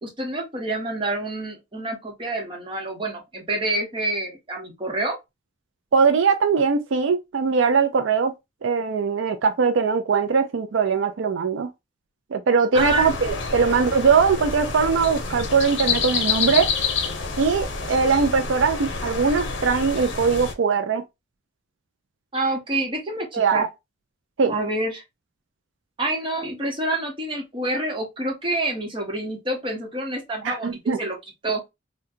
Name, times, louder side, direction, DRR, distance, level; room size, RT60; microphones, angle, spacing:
voice 1, 0.0-5.2 12.7-13.2 22.3-23.6 24.5-25.0 26.0-31.2 31.4-31.6, right 2 dB, 25° right, 1.0 m, -27 dB
voice 2, 5.9-8.3 8.6-11.7 12.3-16.7 17.4-21.0 23.3-23.7 24.4-24.5 30.4-31.0, right 5 dB, 80° right, 0.4 m, -21 dB
sound 1, 12.7-20.5, left 5 dB, 70° left, 0.7 m, -28 dB
3.7 x 2.2 x 2.7 m
head